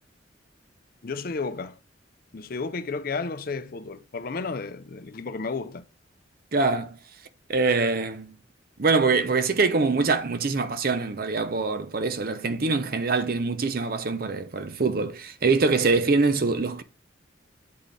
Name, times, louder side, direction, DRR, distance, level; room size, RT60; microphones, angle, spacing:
voice 1, 1.0-1.8 2.3-5.8, left 4 dB, 50° left, 0.5 m, -32 dB
voice 2, 6.5-7.0 7.5-8.3 8.8-16.8, right 3 dB, 50° right, 0.6 m, -24 dB
8.4 x 4.0 x 3.3 m
head